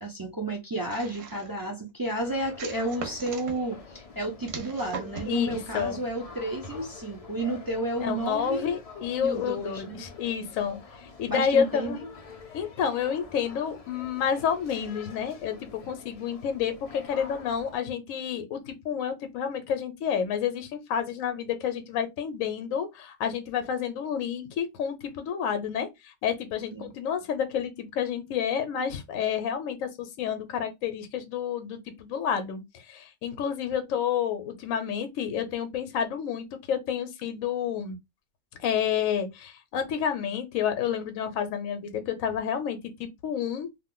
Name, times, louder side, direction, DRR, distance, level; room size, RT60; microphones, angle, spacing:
voice 1, 0.0-8.7 9.2-10.0 11.3-12.0 26.7-26.9, right 1 dB, 30° right, 0.3 m, -32 dB
sound 1, 0.9-1.6 2.6-3.6 4.5-5.4, right 5 dB, 65° right, 1.0 m, -39 dB
sound 2, 2.2-17.8, left 4 dB, 55° left, 0.4 m, -47 dB
voice 2, 5.3-6.0 8.0-12.0 12.5-38.0 38.6-43.7, left 8 dB, 70° left, 1.0 m, -30 dB
2.5 x 2.4 x 3.6 m
omnidirectional pair, 1.5 m